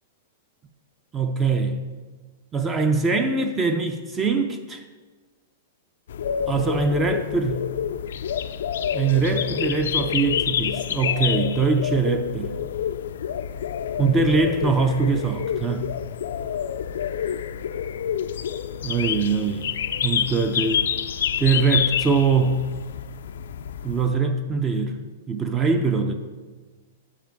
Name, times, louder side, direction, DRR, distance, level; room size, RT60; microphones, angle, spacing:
voice 1, 1.1-1.8 2.5-4.8 6.5-7.7 8.9-12.6 14.0-15.9 18.8-19.7 20.0-20.9 21.4-22.7 23.8-25.0 25.3-26.1, right 4 dB, 15° right, 7 dB, 0.4 m, -22 dB
sound 1, 6.1-24.1, left 9 dB, 75° left, 0.3 m, -28 dB
7.4 x 5.2 x 4.6 m, 1.4 s
supercardioid pair, 160°, 0 cm